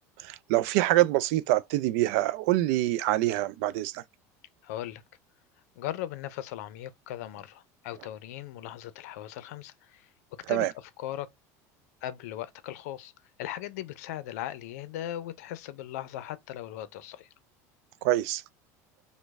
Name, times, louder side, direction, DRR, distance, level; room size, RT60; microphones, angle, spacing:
voice 1, 0.2-4.0 10.5-10.7 18.0-18.4, right 15 dB, 75° right, 0.3 m, -25 dB
voice 2, 4.6-5.0 5.8-10.1 10.5-11.3 12.0-13.1 13.4-17.3, left 12 dB, 85° left, 0.5 m, -38 dB
3.1 x 2.1 x 3.4 m
supercardioid pair, 115°, 8 cm